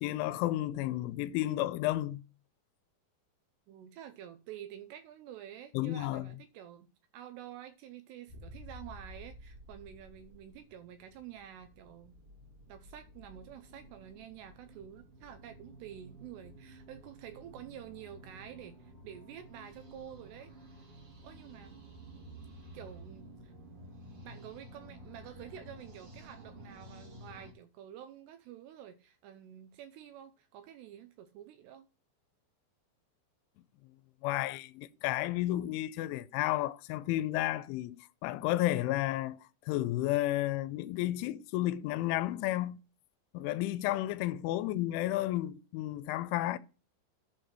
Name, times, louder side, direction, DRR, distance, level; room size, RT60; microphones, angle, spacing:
voice 1, 0.0-2.2 5.7-6.3 34.2-39.4 39.7-42.8 43.3-46.6, left 15 dB, 90° left, 3.0 m, -32 dB
voice 2, 3.7-6.9 7.1-12.2 12.7-20.5 21.2-21.8 22.7-23.5 24.2-31.9 43.9-44.5, right 10 dB, 80° right, 2.5 m, -49 dB
sound 1, 8.3-27.5, right 1 dB, 40° right, 2.4 m, -52 dB
11.5 x 4.1 x 6.1 m
omnidirectional pair, 5.4 m